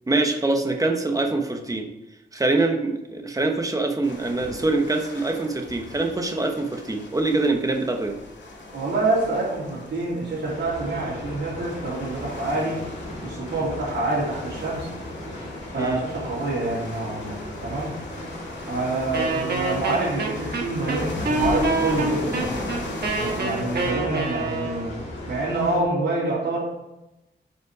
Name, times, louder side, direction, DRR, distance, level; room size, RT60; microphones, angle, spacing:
voice 1, 0.1-1.9 2.3-8.2 15.8-16.0, right 2 dB, 20° right, 4 dB, 1.0 m, -24 dB
sound 1, 4.0-23.9, left 2 dB, 80° left, 2.1 m, -38 dB
voice 2, 8.7-12.8 13.2-14.9 15.7-17.9 18.7-22.6 23.2-24.9 25.3-26.6, right 2 dB, 90° right, -10 dB, 3.2 m, -27 dB
sound 2, 10.4-25.8, left 1 dB, 40° left, 3.2 m, -37 dB
Wind instrument woodwind instrument, 19.1-25.0, right 3 dB, 60° right, 1.4 m, -26 dB
9.6 x 5.6 x 4.8 m, 0.96 s
wide cardioid pair, 160°, 18 cm